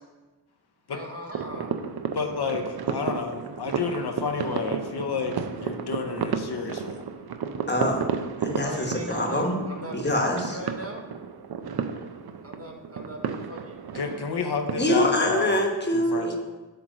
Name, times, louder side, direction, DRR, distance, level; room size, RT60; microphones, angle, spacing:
voice 1, 0.9-1.7 8.6-10.2 10.5-11.1 12.4-13.8, equal, 30° right, 1 dB, 0.9 m, -38 dB
sound 1, 1.3-15.2, right 6 dB, 60° right, 0.5 m, -33 dB
voice 2, 2.1-7.0 13.9-15.6 15.9-16.4, left 5 dB, 60° left, 3 dB, 0.7 m, -30 dB
voice 3, 7.7-8.0 8.4-9.6 9.9-10.6 14.8-16.4, left 1 dB, 25° left, 2 dB, 1.1 m, -24 dB
7.8 x 3.1 x 6.1 m, 1.2 s
wide cardioid pair, 90°, 44 cm